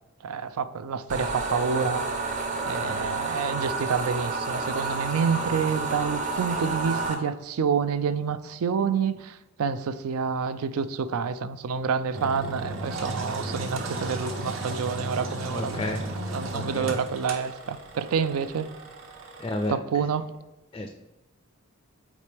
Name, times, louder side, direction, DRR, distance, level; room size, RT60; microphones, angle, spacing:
voice 1, 0.2-2.0 2.7-16.0 16.3-18.7 19.7-20.3, right 6 dB, 85° right, 14 dB, 0.4 m, -28 dB
sound 1, 1.1-7.1, right 3 dB, 35° right, 0.6 m, -30 dB
Engine, 12.1-19.7, right 2 dB, 65° right, 0.9 m, -35 dB
voice 2, 15.5-16.0 16.5-16.9 19.4-19.8 20.7-20.9, left 1 dB, 20° left, 4 dB, 0.3 m, -31 dB
8.5 x 4.1 x 3.4 m, 1.0 s
head